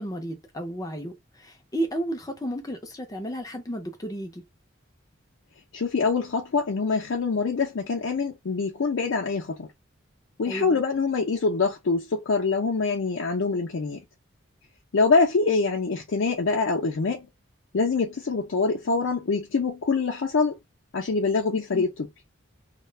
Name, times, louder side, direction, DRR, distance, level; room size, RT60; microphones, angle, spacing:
voice 1, 0.0-4.4 10.5-10.8 21.5-21.8, right 1 dB, 20° left, 0.4 m, -33 dB
voice 2, 5.7-9.7 10.4-14.0 14.9-17.3 17.7-20.6 20.9-21.9, left 4 dB, 75° left, 0.5 m, -25 dB
2.3 x 2.1 x 3.2 m
head